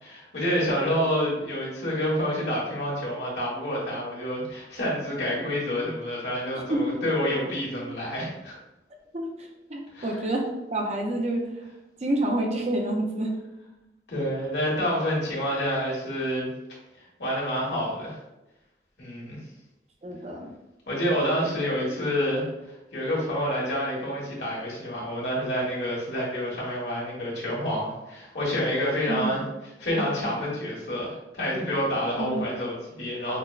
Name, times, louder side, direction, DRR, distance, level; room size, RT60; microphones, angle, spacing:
voice 1, 0.0-8.5 9.9-10.2 14.1-16.5 17.2-18.2 19.0-19.4 20.9-22.4 22.9-29.4 29.8-33.4, equal, 80° left, -4 dB, 1.4 m, -28 dB
voice 2, 6.5-7.0 9.1-10.4 10.7-11.5 12.0-13.3 20.0-20.5 29.1-29.4 32.2-32.5, right 1 dB, 40° right, 1 dB, 0.5 m, -28 dB
5.9 x 2.1 x 2.4 m, 0.95 s
head